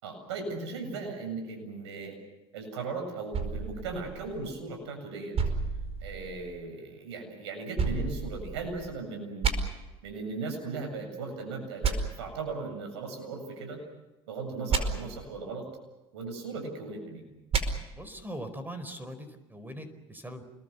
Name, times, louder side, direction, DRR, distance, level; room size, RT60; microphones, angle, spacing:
voice 1, 0.0-2.2 2.5-5.4 6.0-9.5 10.0-13.8 14.3-15.6 16.1-17.2, right 3 dB, 90° right, 4 dB, 7.6 m, -37 dB
sound 1, 3.3-4.8 5.3-6.6 7.8-8.9 9.4-9.5 11.8-11.9 14.7-14.8 17.5-17.6, right 5 dB, 45° right, 5.0 m, -30 dB
voice 2, 17.9-20.4, equal, 15° right, 11 dB, 4.6 m, -41 dB
29.0 x 22.0 x 7.0 m, 1.0 s
hypercardioid pair, 75°, 14 cm